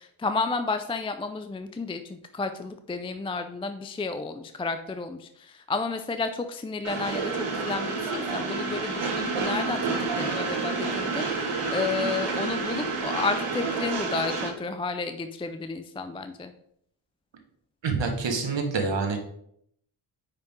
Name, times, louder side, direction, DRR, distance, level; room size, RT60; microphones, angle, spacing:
voice 1, 0.0-16.5, left 4 dB, 10° left, 8 dB, 0.4 m, -32 dB
Train, 6.8-14.5, right 4 dB, 80° right, 1.9 m, -29 dB
voice 2, 17.8-19.2, right 4 dB, 60° right, 3 dB, 1.5 m, -26 dB
5.4 x 5.4 x 3.6 m, 0.71 s
cardioid pair, 65°, 50 cm